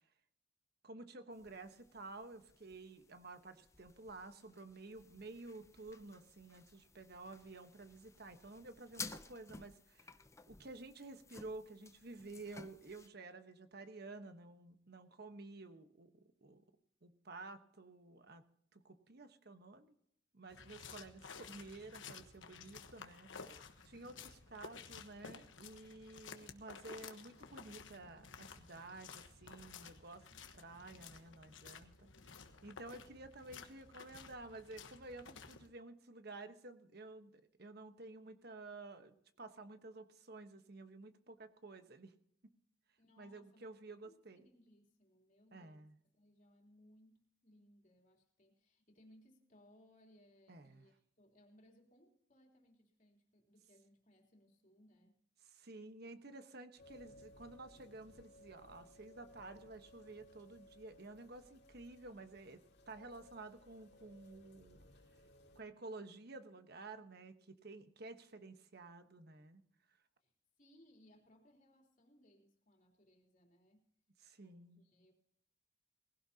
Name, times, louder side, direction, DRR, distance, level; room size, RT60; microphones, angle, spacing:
voice 1, 0.8-10.2 10.5-16.6 17.0-18.4 18.7-19.9 20.3-30.3 30.5-42.1 43.2-44.5 45.5-46.0 50.5-50.9 55.6-64.8 65.5-69.6 74.2-74.8, right 2 dB, 55° right, 8 dB, 1.2 m, -52 dB
sound 1, 1.3-13.1, left 4 dB, 15° left, 0.6 m, -55 dB
sound 2, 20.5-35.7, left 5 dB, 75° left, 1.2 m, -54 dB
voice 2, 43.0-43.7 43.9-45.9 46.1-55.2 70.2-73.9 74.4-75.1, left 1 dB, 40° left, 0 dB, 3.5 m, -67 dB
sound 3, 56.8-65.6, left 1 dB, 55° left, 2.3 m, -62 dB
19.5 x 16.5 x 2.9 m, 0.66 s
head